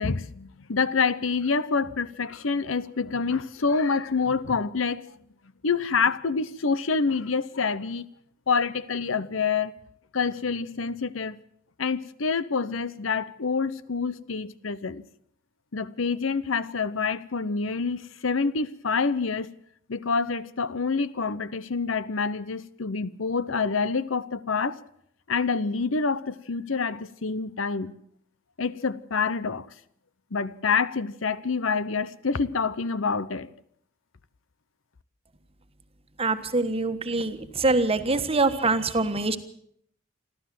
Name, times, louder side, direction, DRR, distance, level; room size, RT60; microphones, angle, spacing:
voice 1, 0.0-5.0 5.6-8.0 8.5-9.7 10.1-11.4 11.8-15.0 15.7-19.5 19.9-24.8 25.3-28.0 28.6-29.7 30.3-33.5, left 5 dB, 75° left, 0.8 m, -27 dB
voice 2, 36.2-39.4, right 3 dB, 30° right, 1.4 m, -24 dB
28.5 x 12.5 x 7.6 m
head